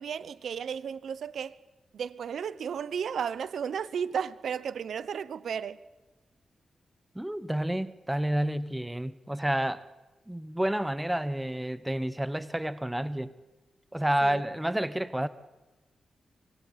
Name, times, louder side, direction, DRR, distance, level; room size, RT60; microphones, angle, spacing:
voice 1, 0.0-1.5 1.9-5.8 14.2-14.4, right 7 dB, 80° right, 0.9 m, -34 dB
voice 2, 7.1-9.8 10.3-13.3 13.9-15.3, right 1 dB, 5° right, 1.0 m, -30 dB
24.5 x 19.5 x 8.8 m
wide cardioid pair, 105°, 0 cm